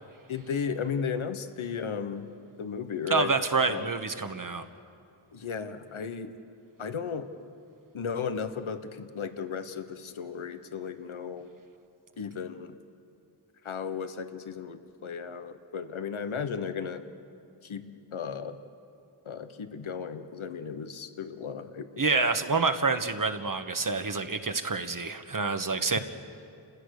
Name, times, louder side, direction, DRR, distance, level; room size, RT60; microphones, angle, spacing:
voice 1, 0.3-2.3 2.6-3.3 3.6-3.9 5.3-6.3 6.8-7.3 7.9-11.5 12.2-12.7 13.6-17.0 17.6-17.8 18.1-18.6 19.2-22.3 25.9-26.0, left 6 dB, 75° left, 10 dB, 1.3 m, -35 dB
voice 2, 3.1-4.6 22.0-26.0, right 4 dB, 40° right, 8 dB, 1.5 m, -27 dB
29.0 x 16.0 x 6.6 m, 2.6 s
cardioid pair, 45°, 49 cm